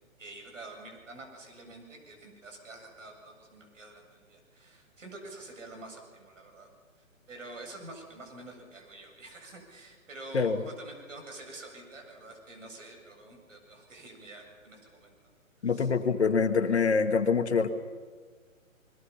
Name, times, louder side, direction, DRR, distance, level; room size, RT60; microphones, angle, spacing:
voice 1, 0.2-6.7 7.3-15.1 15.6-15.9, right 2 dB, 65° right, 3 dB, 7.8 m, -47 dB
voice 2, 15.6-17.7, left 5 dB, 50° left, 7 dB, 1.8 m, -25 dB
27.0 x 22.0 x 5.8 m, 1.5 s
hypercardioid pair, 180°, 41 cm